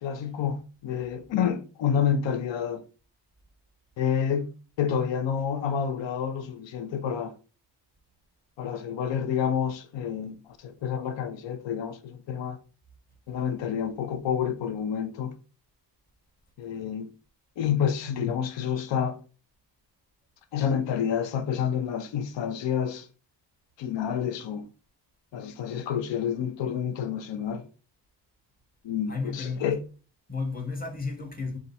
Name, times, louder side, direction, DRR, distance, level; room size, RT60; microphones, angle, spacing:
voice 1, 0.0-2.8 4.0-4.5 4.8-7.3 8.6-12.6 13.3-15.3 16.6-17.1 17.6-19.2 20.5-23.1 23.8-24.7 25.3-27.6 28.8-29.8, left 8 dB, 85° left, 0.7 m, -29 dB
voice 2, 29.1-29.8 30.3-31.6, left 4 dB, 20° left, 1.0 m, -33 dB
4.3 x 2.5 x 4.1 m
wide cardioid pair, 155°, 43 cm